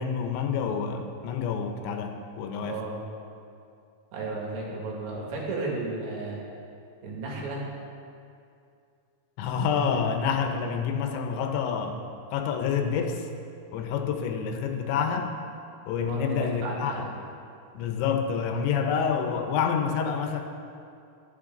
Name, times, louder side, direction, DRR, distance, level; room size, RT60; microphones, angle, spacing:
voice 1, 0.0-2.8 9.4-12.0 12.3-13.3 13.7-15.3 15.9-17.1 17.7-20.4, left 6 dB, 80° left, 5 dB, 3.2 m, -28 dB
voice 2, 2.6-3.0 4.1-6.4 7.0-7.6 16.0-17.2, right 3 dB, 75° right, -3 dB, 4.6 m, -33 dB
25.0 x 8.4 x 3.9 m, 2.4 s
omnidirectional pair, 5.3 m